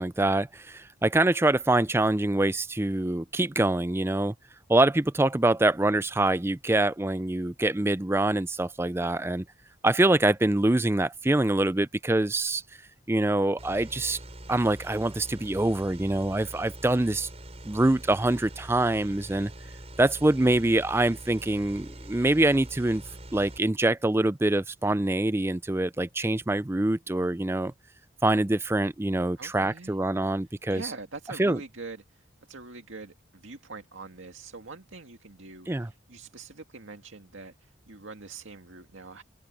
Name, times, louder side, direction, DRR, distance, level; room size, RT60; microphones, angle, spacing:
voice 1, 0.0-4.3 4.7-9.4 9.8-12.6 13.1-14.2 14.5-17.3 17.6-19.5 20.0-23.0 23.3-27.7 28.2-30.9 31.4-31.6 35.7-35.9, right 2 dB, 10° right, 0.4 m, -25 dB
sound 1, 13.6-23.6, right 1 dB, 30° right, 6.3 m, -44 dB
voice 2, 29.4-30.0 30.7-39.2, right 3 dB, 75° right, 2.0 m, -44 dB
open air
head